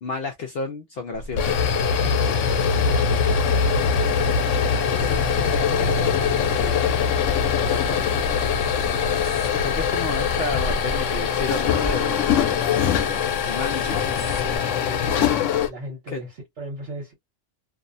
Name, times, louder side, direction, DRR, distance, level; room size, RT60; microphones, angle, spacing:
voice 1, 0.0-1.7 7.5-8.2 9.5-14.0 16.1-16.2, left 4 dB, 65° left, 0.7 m, -32 dB
sound 1, 1.2-15.7, left 6 dB, 85° left, 0.9 m, -22 dB
voice 2, 2.0-4.4 4.7-6.9 14.8-17.1, right 1 dB, 70° right, 1.3 m, -39 dB
sound 2, 4.9-14.6, equal, 20° right, 0.9 m, -36 dB
2.6 x 2.1 x 2.4 m
omnidirectional pair, 1.2 m